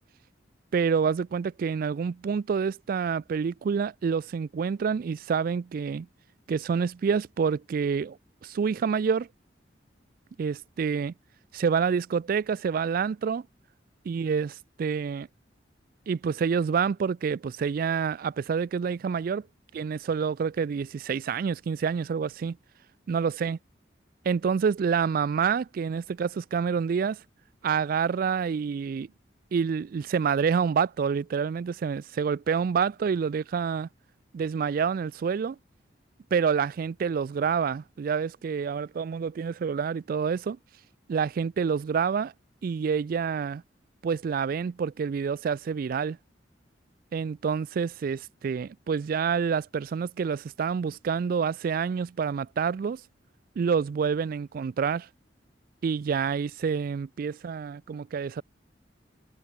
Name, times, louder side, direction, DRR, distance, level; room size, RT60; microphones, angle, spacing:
voice 1, 0.7-6.1 6.5-8.2 8.4-9.3 10.4-11.1 11.5-13.4 14.1-15.3 16.1-19.4 19.7-22.6 23.1-23.6 24.2-27.2 27.6-29.1 29.5-33.9 34.3-35.6 36.3-40.6 41.1-42.3 42.6-43.6 44.0-46.2 47.1-53.0 53.6-55.1 55.8-58.4, right 6 dB, 55° right, 0.3 m, -27 dB
head